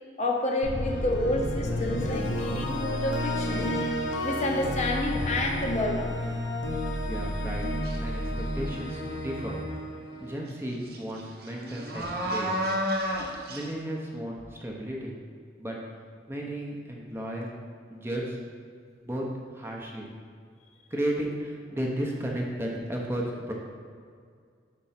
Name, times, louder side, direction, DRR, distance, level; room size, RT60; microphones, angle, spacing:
voice 1, 0.2-3.7 4.2-6.3, left 1 dB, 40° left, 1 dB, 0.7 m, -29 dB
sound 1, 0.6-10.8, left 1 dB, 90° left, 0.9 m, -31 dB
voice 2, 6.9-7.7 8.0-9.5 10.2-12.7 13.5-15.1 15.6-15.8 16.3-17.5 17.9-18.4 19.0-19.3 19.5-20.1 20.9-23.5, right 1 dB, 15° right, -2 dB, 0.7 m, -34 dB
sound 2, 7.8-8.1 8.6-9.2 10.5-10.6 10.9-13.7, equal, 55° right, 0.8 m, -31 dB
5.2 x 4.5 x 5.7 m, 2.2 s
head